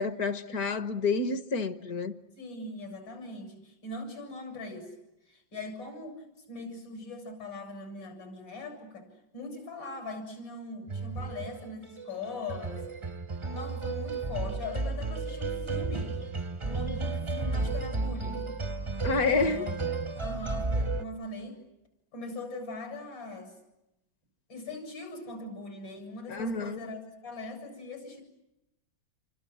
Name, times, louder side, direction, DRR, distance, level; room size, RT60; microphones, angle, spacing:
voice 1, 0.0-2.2 19.0-19.6 26.3-26.8, left 4 dB, 55° left, 1.5 m, -29 dB
voice 2, 2.4-4.9 5.3-12.9 13.5-16.2 16.6-18.5 18.8-19.8 20.2-21.6 22.1-23.6 24.5-28.2, left 3 dB, 85° left, 8.2 m, -41 dB
sound 1, 10.9-21.0, right 3 dB, 25° right, 0.6 m, -33 dB
28.5 x 25.5 x 7.7 m
omnidirectional pair, 2.0 m